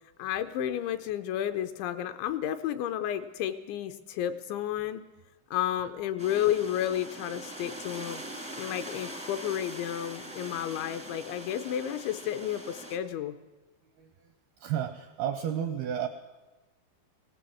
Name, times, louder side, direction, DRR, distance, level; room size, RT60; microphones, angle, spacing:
voice 1, 0.2-5.1 5.5-8.2 8.6-13.4, left 11 dB, 80° left, 8 dB, 2.8 m, -31 dB
sound 1, 6.2-13.0, right 1 dB, 10° right, 0.3 m, -42 dB
voice 2, 14.6-16.1, right 9 dB, 80° right, 8 dB, 2.2 m, -31 dB
21.0 x 17.5 x 7.7 m, 1.1 s
omnidirectional pair, 5.7 m